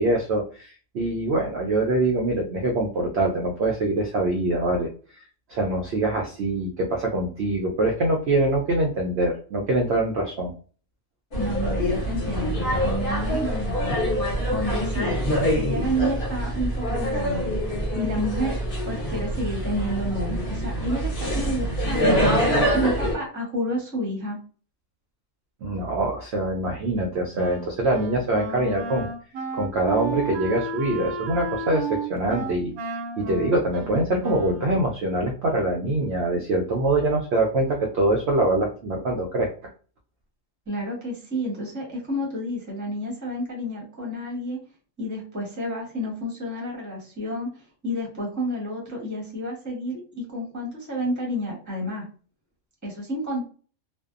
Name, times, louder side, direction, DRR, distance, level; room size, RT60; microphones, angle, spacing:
voice 1, 0.0-4.9 5.5-10.5 25.6-29.1 29.5-32.7 33.2-39.5, right 2 dB, 65° right, 0 dB, 0.7 m, -24 dB
sound 1, 11.3-23.1, equal, 45° left, 1.0 m, -25 dB
voice 2, 11.3-14.0 14.5-17.5 17.9-18.6 18.9-22.3 22.7-24.4 40.7-44.6 45.0-47.5 47.8-52.1 52.8-53.5, equal, 15° right, -3 dB, 0.8 m, -30 dB
Wind instrument woodwind instrument, 27.3-34.8, right 3 dB, 80° right, 1.0 m, -33 dB
2.6 x 2.2 x 2.3 m, 0.39 s
omnidirectional pair, 1.5 m